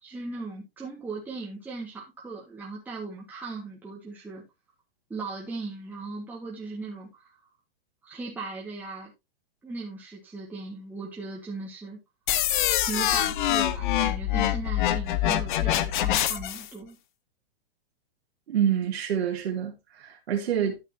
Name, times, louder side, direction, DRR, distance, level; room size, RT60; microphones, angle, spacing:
voice 1, 0.0-4.4 5.1-7.4 8.0-9.1 9.6-12.0 12.8-17.0, right 3 dB, 5° right, 1.7 m, -38 dB
sound 1, 12.3-16.7, left 12 dB, 55° left, 0.9 m, -25 dB
voice 2, 18.5-20.8, right 9 dB, 85° right, 2.3 m, -27 dB
12.0 x 6.7 x 2.8 m
hypercardioid pair, 160°, 30 cm